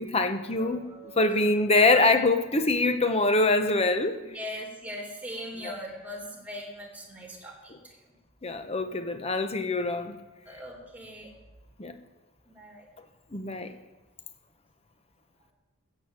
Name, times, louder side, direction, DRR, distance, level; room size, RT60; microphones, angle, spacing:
voice 1, 0.0-0.8 1.2-4.2 5.6-5.7 8.4-10.2 11.8-12.0 13.3-13.7, left 2 dB, 30° left, 8 dB, 0.9 m, -24 dB
voice 2, 0.6-1.3 1.8-2.0 4.2-7.9 10.5-11.3 12.5-12.9, equal, 5° right, 0 dB, 2.7 m, -41 dB
14.5 x 7.2 x 8.1 m, 1.1 s
head